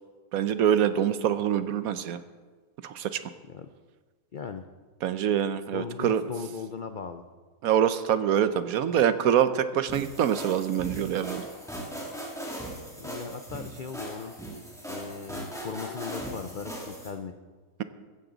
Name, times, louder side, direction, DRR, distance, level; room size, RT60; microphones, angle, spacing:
voice 1, 0.3-2.2 2.8-3.2 5.0-6.2 7.6-11.5, right 9 dB, 70° right, 12 dB, 1.1 m, -25 dB
voice 2, 4.3-4.7 5.7-7.2 13.0-14.3 14.9-17.3, left 6 dB, 80° left, 8 dB, 0.4 m, -38 dB
sound 1, 9.9-17.1, right 1 dB, ahead, 2.5 m, -39 dB
15.0 x 15.0 x 4.0 m, 1.4 s
omnidirectional pair, 1.7 m